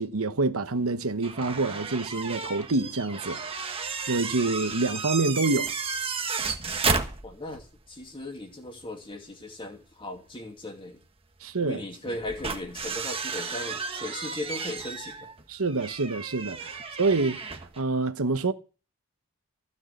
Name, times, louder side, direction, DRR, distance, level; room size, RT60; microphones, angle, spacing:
voice 1, 0.0-3.4 4.1-5.7 11.4-11.8 15.5-18.5, right 3 dB, 70° right, 1.1 m, -27 dB
sound 1, 1.2-7.7 8.0-8.1 10.2-10.3 12.1-17.8, right 5 dB, 25° right, 1.3 m, -33 dB
voice 2, 7.2-11.0 11.6-15.3, left 1 dB, 25° left, 2.6 m, -37 dB
15.5 x 6.4 x 8.3 m
head